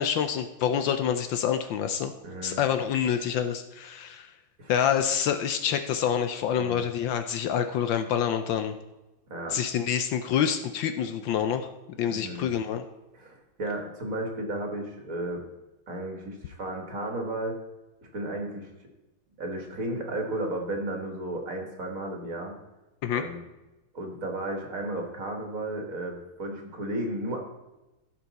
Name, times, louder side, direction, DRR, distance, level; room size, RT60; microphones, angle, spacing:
voice 1, 0.0-2.1 2.4-4.3 4.7-8.7 9.5-12.8 23.0-23.2, left 8 dB, 75° left, 8 dB, 1.3 m, -27 dB
voice 2, 2.2-2.6 4.6-4.7 6.5-6.9 9.3-9.6 12.1-12.5 13.1-15.4 15.9-17.5 18.1-18.7 19.4-22.5 23.1-23.4 23.9-27.4, right 1 dB, 45° right, 2 dB, 1.8 m, -33 dB
15.0 x 5.9 x 4.1 m, 1.0 s
omnidirectional pair, 2.3 m